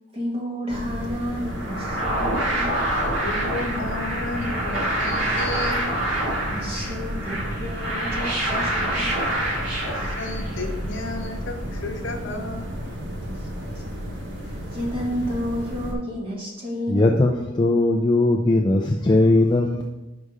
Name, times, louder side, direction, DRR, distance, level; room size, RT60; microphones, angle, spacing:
voice 1, 0.1-2.7 6.5-9.2 13.2-14.0 14.4-17.4, equal, 30° right, -4 dB, 1.7 m, -31 dB
sound 1, 0.7-15.9, equal, 65° right, 1.1 m, -32 dB
sound 2, 1.4-10.8, right 1 dB, 85° right, 2.2 m, -27 dB
voice 2, 3.2-5.8 9.8-12.7, left 2 dB, 75° left, 3 dB, 0.9 m, -32 dB
voice 3, 16.9-19.8, left 2 dB, 20° left, 0 dB, 0.4 m, -19 dB
5.4 x 4.9 x 4.9 m, 1.1 s
head